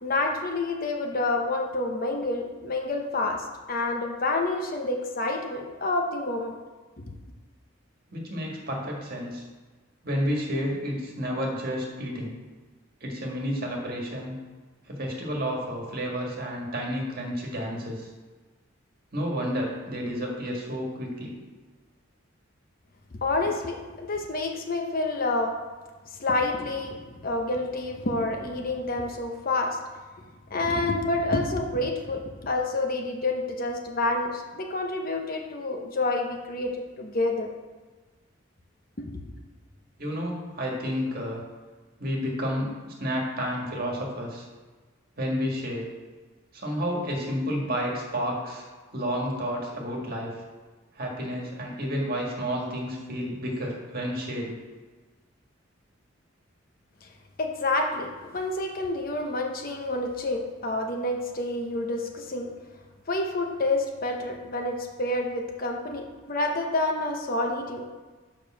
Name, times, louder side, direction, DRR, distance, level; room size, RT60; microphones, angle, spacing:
voice 1, 0.0-6.6 23.1-25.5 26.2-27.0 27.2-29.8 30.5-37.5 57.4-62.5 63.1-67.8, left 2 dB, 45° left, 2 dB, 0.9 m, -28 dB
voice 2, 8.1-9.4 10.0-12.3 13.0-14.3 14.9-18.1 19.1-21.4 40.0-41.4 42.0-44.4 45.2-45.9 46.5-48.6 48.9-50.3 50.9-54.6, equal, 50° right, -1 dB, 1.7 m, -30 dB
6.7 x 5.3 x 6.2 m, 1.3 s
head